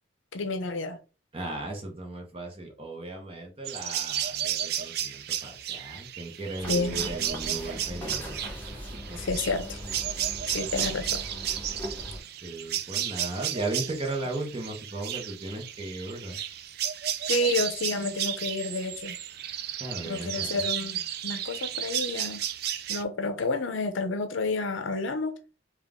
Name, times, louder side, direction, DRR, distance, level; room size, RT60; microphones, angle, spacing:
voice 1, 0.3-1.0 6.7-7.2 9.2-9.8 10.5-11.2 17.3-19.2 20.1-22.4 22.9-25.3, left 3 dB, 70° left, 0.6 m, -30 dB
voice 2, 1.3-8.8 9.1-9.2 10.7-10.9 12.4-16.4 19.8-20.6, right 2 dB, 30° right, 0.9 m, -36 dB
sound 1, 3.6-23.0, right 10 dB, 50° right, 0.3 m, -33 dB
sound 2, 6.5-12.2, equal, 10° left, 1.1 m, -39 dB
3.6 x 2.4 x 3.6 m
head